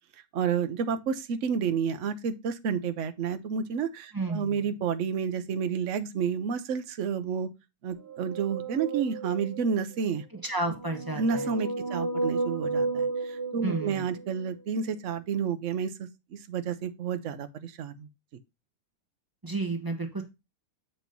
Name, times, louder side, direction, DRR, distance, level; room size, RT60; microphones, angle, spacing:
voice 1, 0.3-7.5 7.8-10.2 11.2-18.1, right 6 dB, 55° right, 0.9 m, -30 dB
voice 2, 4.1-4.7 10.4-11.9 13.6-14.0 19.4-20.2, right 2 dB, 15° right, 1.0 m, -32 dB
sound 1, 8.1-9.7 10.6-14.4, right 3 dB, 40° right, 1.4 m, -32 dB
8.3 x 3.0 x 5.2 m
omnidirectional pair, 1.8 m